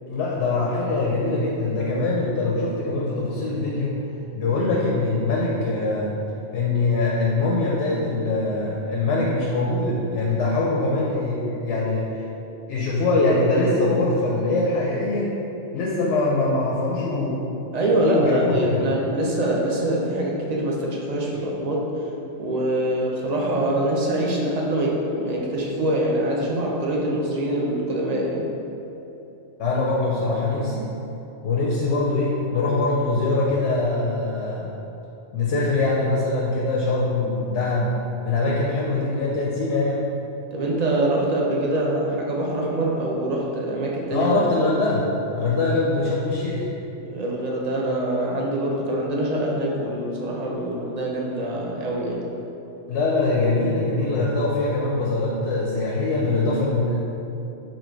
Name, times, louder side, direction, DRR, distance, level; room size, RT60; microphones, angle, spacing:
voice 1, 0.0-4.0 4.3-6.1 6.5-12.1 12.7-15.3 15.7-17.4 18.1-18.8 29.6-30.9 31.4-34.7 35.3-37.9 38.2-40.0 44.1-45.1 45.4-46.7 52.9-57.0, left 2 dB, 80° left, -4 dB, 0.9 m, -23 dB
voice 2, 17.7-21.9 22.4-28.5 40.5-44.3 47.0-52.2, right 1 dB, 45° right, -3 dB, 0.6 m, -24 dB
4.4 x 2.5 x 4.5 m, 2.9 s
omnidirectional pair, 1.2 m